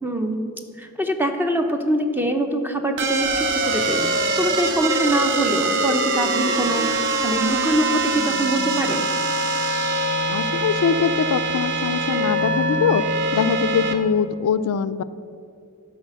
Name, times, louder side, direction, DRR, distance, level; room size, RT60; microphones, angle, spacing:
voice 1, 0.0-0.5 0.8-9.1, right 1 dB, 10° right, 5 dB, 0.6 m, -24 dB
sound 1, 3.0-14.0, right 2 dB, 55° right, 0.7 m, -23 dB
voice 2, 10.3-13.0 13.3-15.0, left 6 dB, 80° left, 14 dB, 0.4 m, -22 dB
11.5 x 4.1 x 6.3 m, 2.5 s
head